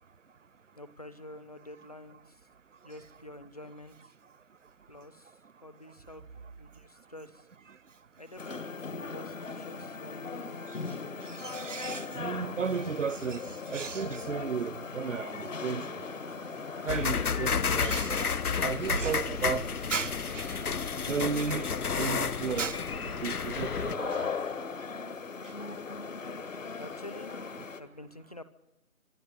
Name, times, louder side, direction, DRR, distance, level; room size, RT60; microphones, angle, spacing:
voice 1, 0.8-2.4 2.8-4.1 4.9-5.4 5.6-6.2 6.6-7.5 8.2-10.6 26.8-27.3 27.8-28.4, left 1 dB, 25° left, 0.8 m, -48 dB
sound 1, 8.4-27.8, left 4 dB, 60° left, 1.7 m, -39 dB
voice 2, 11.3-15.9 16.8-18.3 18.6-20.6 21.1-21.7 22.0-24.3, right 6 dB, 55° right, 0.7 m, -34 dB
sound 2, 16.9-24.0, left 6 dB, 90° left, 0.9 m, -31 dB
25.5 x 11.5 x 9.9 m
figure-of-eight pair, 165°, 44 cm